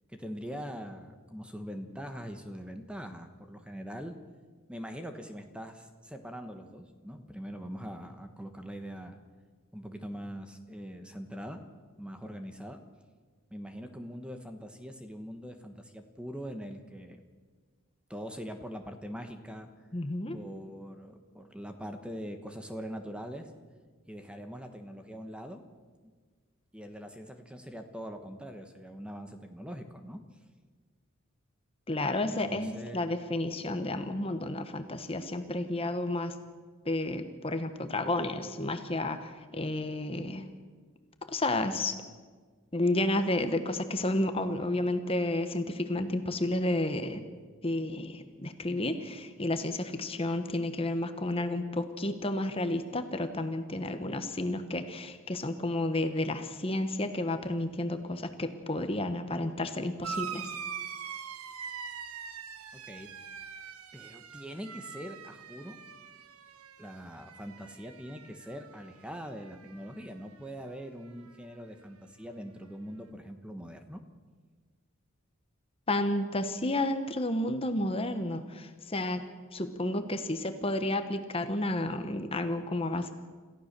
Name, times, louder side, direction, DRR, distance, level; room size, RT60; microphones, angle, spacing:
voice 1, 0.1-4.2 4.7-9.2 9.7-11.6 12.0-12.8 13.5-17.2 18.1-19.7 20.3-23.5 24.1-25.6 26.7-30.2 32.2-33.0 62.7-63.1 63.9-65.8 66.8-74.0, equal, 5° right, 6 dB, 1.2 m, -42 dB
voice 2, 19.9-20.4 31.9-36.3 36.8-40.4 41.3-41.9 42.7-47.2 47.6-60.5 75.9-79.2 79.5-83.1, left 1 dB, 25° left, 8 dB, 1.2 m, -31 dB
sound 1, 60.0-69.0 69.3-70.1 71.2-71.3, right 7 dB, 90° right, 1.2 m, -43 dB
27.5 x 15.0 x 6.8 m, 1.5 s
head